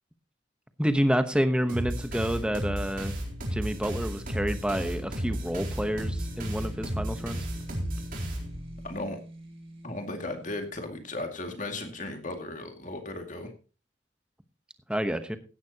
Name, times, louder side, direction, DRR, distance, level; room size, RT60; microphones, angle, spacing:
voice 1, 0.8-3.1 3.5-7.4 14.9-15.4, equal, 5° right, 9 dB, 1.0 m, -28 dB
sound 1, 1.7-8.9, equal, 45° right, 4.2 m, -34 dB
sound 2, 4.7-11.4, right 1 dB, 30° right, 2.4 m, -45 dB
voice 2, 8.8-9.2 9.8-13.5, left 2 dB, 40° left, 5 dB, 2.2 m, -36 dB
16.0 x 11.5 x 2.9 m, 0.34 s
head